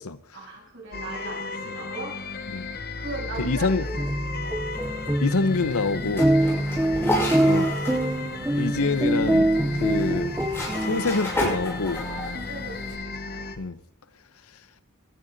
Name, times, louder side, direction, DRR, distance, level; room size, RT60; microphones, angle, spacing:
voice 1, 0.3-2.1 3.0-4.5 6.4-9.0 12.0-13.7, right 2 dB, 60° right, -2 dB, 7.5 m, -40 dB
sound 1, 0.9-13.6, left 3 dB, 45° left, 1.1 m, -34 dB
voice 2, 3.4-3.9 5.2-6.3 7.4-7.7 8.5-9.5 9.7-10.3 10.8-12.0 13.6-13.8, left 3 dB, 90° left, 14 dB, 0.9 m, -26 dB
sound 2, 3.8-11.4, right 1 dB, 10° right, 0.7 m, -25 dB
sound 3, 4.6-12.9, left 1 dB, 10° left, 7.2 m, -33 dB
18.5 x 13.0 x 4.0 m, 0.62 s
head